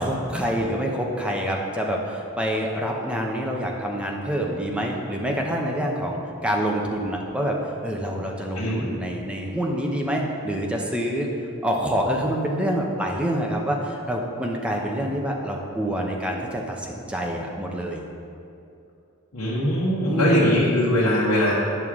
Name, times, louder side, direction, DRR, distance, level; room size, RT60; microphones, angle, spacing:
voice 1, 0.0-7.6 7.8-11.3 11.6-18.0 20.0-20.6, equal, 5° right, -1 dB, 0.7 m, -26 dB
voice 2, 19.3-21.5, equal, 85° left, -7 dB, 1.2 m, -21 dB
9.0 x 6.4 x 3.6 m, 2.6 s
head